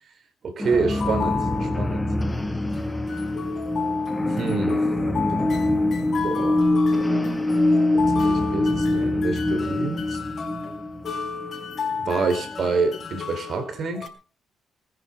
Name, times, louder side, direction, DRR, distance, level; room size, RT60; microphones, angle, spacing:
voice 1, 0.4-2.1 4.4-4.8 6.1-6.7 7.9-10.2 12.0-14.1, right 4 dB, 55° right, 4.1 m, -27 dB
sound 1, 0.6-13.1, left 2 dB, 10° left, 2.2 m, -24 dB
sound 2, 0.7-2.3 2.7-14.1, left 6 dB, 50° left, 4.3 m, -33 dB
21.0 x 10.0 x 5.2 m
cardioid pair, 90°, 0 cm